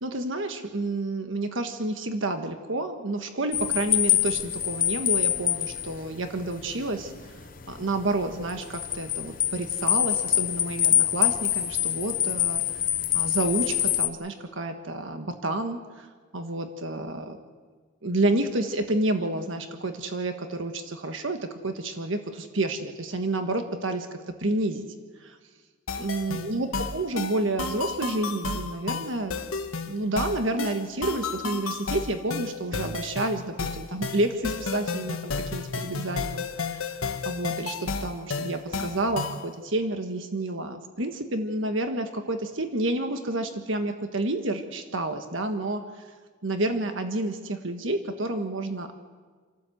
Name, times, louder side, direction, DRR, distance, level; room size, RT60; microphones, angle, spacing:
voice 1, 0.0-7.1 7.7-12.6 13.1-16.1 16.3-17.4 18.0-24.8 25.2-25.4 26.0-29.3 29.9-37.0 37.2-46.1 46.4-48.9, right 2 dB, 65° right, 6 dB, 1.4 m, -29 dB
sound 1, 3.5-14.1, left 12 dB, 40° left, 0.8 m, -26 dB
sound 2, 25.9-39.5, left 4 dB, 80° left, 1.3 m, -32 dB
28.5 x 12.5 x 7.9 m, 1.5 s
head